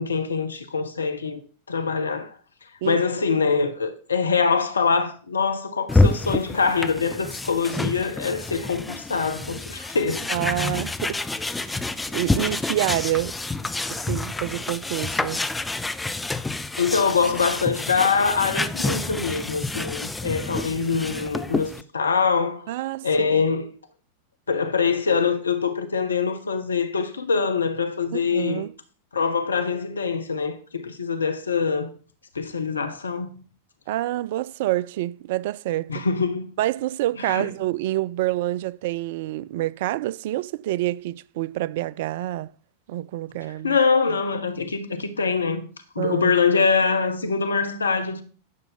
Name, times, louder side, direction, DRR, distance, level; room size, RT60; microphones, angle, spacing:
voice 1, 0.0-1.4 1.7-2.4 2.8-10.3 10.6-10.7 16.7-22.7 23.0-23.7 24.5-28.6 29.1-31.9 32.3-33.4 35.9-36.5 37.2-37.5 43.6-45.7 45.9-48.2, left 5 dB, 75° left, 1.1 m, -24 dB
sound 1, 5.9-21.8, left 2 dB, 10° left, 0.5 m, -28 dB
voice 2, 10.3-11.2 11.6-13.4 13.9-15.4 22.7-23.3 28.1-28.7 33.9-36.1 36.6-42.5 42.9-43.8 46.0-46.4, right 15 dB, 50° right, 0.3 m, -27 dB
11.0 x 6.9 x 4.0 m
figure-of-eight pair, 90°, 0 cm